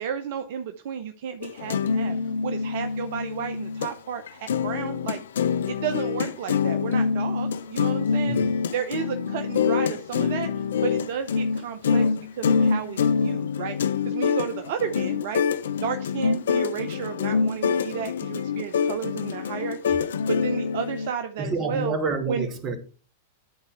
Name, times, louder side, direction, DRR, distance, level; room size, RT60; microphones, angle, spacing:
voice 1, 0.0-2.2 2.4-5.2 5.7-8.4 8.7-12.1 12.3-13.8 14.0-15.4 15.8-20.0 20.3-22.0 22.3-22.5, right 7 dB, 60° right, 0.7 m, -32 dB
sound 1, 1.4-3.9 4.3-21.1, left 6 dB, 70° left, 0.6 m, -25 dB
voice 2, 21.4-22.8, right 3 dB, 30° right, 2.1 m, -28 dB
11.0 x 4.4 x 5.7 m
hypercardioid pair, 100°, 0 cm